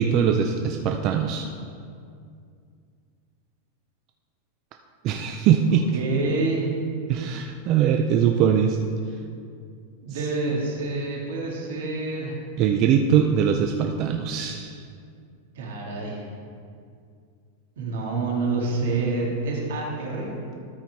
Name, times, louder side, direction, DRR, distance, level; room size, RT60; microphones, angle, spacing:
voice 1, 0.0-1.5 5.0-5.9 7.1-8.8 12.6-14.8, right 8 dB, 40° right, 4 dB, 0.4 m, -21 dB
voice 2, 5.9-6.7 10.0-12.3 15.6-16.2 17.8-20.3, right 3 dB, 80° right, -2 dB, 2.3 m, -27 dB
13.0 x 4.4 x 4.7 m, 2.3 s
supercardioid pair, 155°, 0 cm